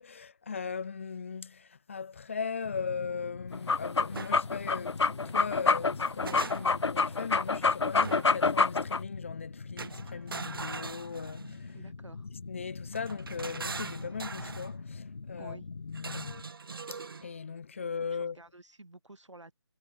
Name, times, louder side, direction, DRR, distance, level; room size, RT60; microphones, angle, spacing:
voice 1, 0.0-11.7 12.5-16.4 17.2-18.4, left 5 dB, 25° left, 0.6 m, -38 dB
sound 1, 2.6-16.4, left 4 dB, 50° left, 2.4 m, -43 dB
sound 2, 3.5-9.0, left 4 dB, 70° left, 0.6 m, -26 dB
sound 3, 4.1-4.4 5.8-6.9 8.0-8.4 9.8-11.6 12.9-14.7 15.9-17.3, right 4 dB, 50° right, 0.6 m, -41 dB
voice 2, 11.7-12.3 15.4-15.7 18.1-19.5, right 2 dB, 85° right, 2.8 m, -50 dB
figure-of-eight pair, 160°, 15 cm